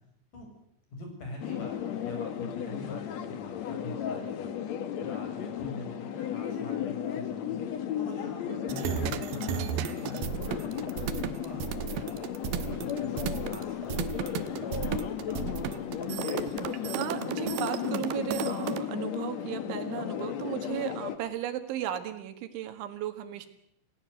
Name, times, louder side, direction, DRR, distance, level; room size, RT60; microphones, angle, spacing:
voice 1, 0.9-4.5 5.0-7.6 8.0-12.3 12.6-15.9, left 1 dB, 45° left, 2 dB, 8.0 m, -44 dB
sound 1, 1.4-21.2, left 9 dB, 80° left, 1.5 m, -35 dB
sound 2, 8.7-18.8, right 11 dB, 70° right, 2.4 m, -34 dB
voice 2, 17.0-23.5, right 11 dB, 85° right, 9 dB, 4.1 m, -35 dB
28.0 x 17.0 x 7.9 m, 0.71 s
omnidirectional pair, 5.2 m